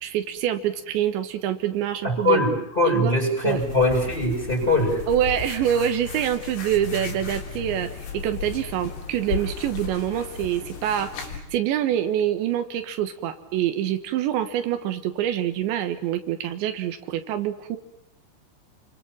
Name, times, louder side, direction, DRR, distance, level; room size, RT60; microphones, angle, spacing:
voice 1, 0.0-2.4 2.9-3.1 3.4-3.7 5.1-17.8, right 11 dB, 85° right, 8 dB, 3.7 m, -26 dB
voice 2, 2.0-5.0, left 1 dB, 10° left, 2 dB, 7.0 m, -22 dB
sound 1, 3.4-11.4, left 6 dB, 65° left, 5.5 m, -35 dB
30.0 x 23.5 x 7.5 m, 0.77 s
omnidirectional pair, 5.1 m